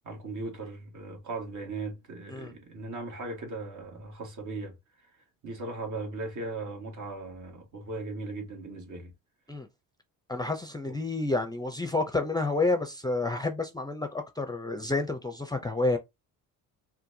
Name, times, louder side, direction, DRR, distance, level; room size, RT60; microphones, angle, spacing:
voice 1, 0.0-5.1 5.4-9.1 10.8-11.0, right 3 dB, 55° right, 1.7 m, -38 dB
voice 2, 10.3-16.0, left 2 dB, 10° left, 0.5 m, -29 dB
4.2 x 2.3 x 2.7 m
cardioid pair, 95°, 35 cm